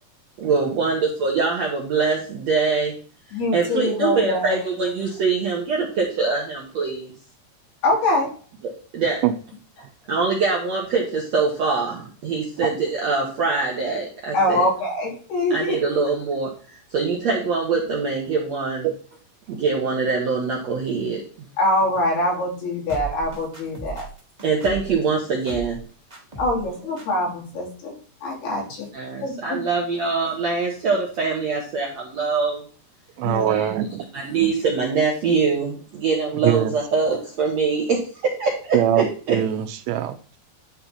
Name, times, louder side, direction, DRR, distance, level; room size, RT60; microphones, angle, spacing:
voice 1, 0.4-2.9 3.5-7.1 8.6-9.2 10.1-14.6 15.5-18.9 19.5-21.2 24.4-25.8 28.9-32.6 33.5-33.7 34.1-39.4, right 4 dB, 60° right, 1.8 m, -23 dB
voice 2, 3.3-4.5 7.8-8.3 14.3-15.8 21.6-24.0 26.4-27.9 28.2-28.9 29.2-29.6 33.2-33.7, left 1 dB, 65° left, 4.9 m, -24 dB
sound 1, 22.9-25.0 25.5-25.8 26.1-26.7 27.0-27.1, right 3 dB, 35° right, 0.5 m, -36 dB
voice 3, 33.2-34.1 36.4-36.7 38.7-40.4, right 11 dB, 85° right, 2.8 m, -22 dB
11.5 x 4.4 x 4.2 m
omnidirectional pair, 4.9 m